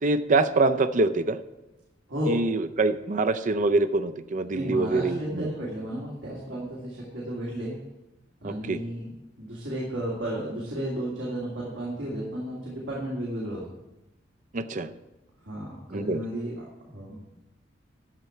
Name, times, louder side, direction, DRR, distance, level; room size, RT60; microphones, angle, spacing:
voice 1, 0.0-1.4 2.3-5.5 8.4-8.8 14.5-14.9 15.9-16.2, right 3 dB, 40° right, 12 dB, 0.5 m, -25 dB
voice 2, 4.5-7.8 8.4-9.1 9.4-13.6 15.4-17.3, equal, 85° right, -5 dB, 2.5 m, -33 dB
13.5 x 4.5 x 7.1 m, 0.98 s
head